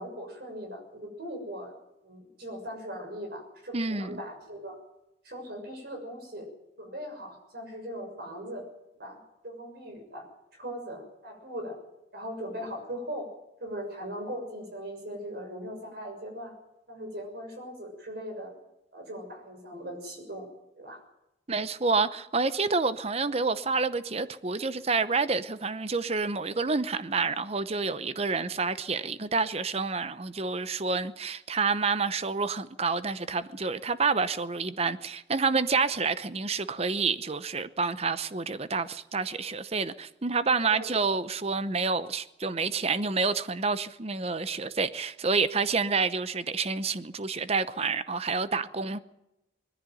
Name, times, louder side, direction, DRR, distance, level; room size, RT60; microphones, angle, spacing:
voice 1, 0.0-1.7 2.0-4.8 5.2-6.5 6.8-8.7 9.0-9.2 9.4-10.2 10.5-11.8 12.1-13.3 13.6-16.5 16.9-18.5 18.9-20.5 20.8-21.0 40.7-40.9, equal, 55° right, 6.4 m, -39 dB
voice 2, 3.7-4.2 21.5-49.0, right 4 dB, 35° right, 0.8 m, -28 dB
21.0 x 14.5 x 9.2 m
head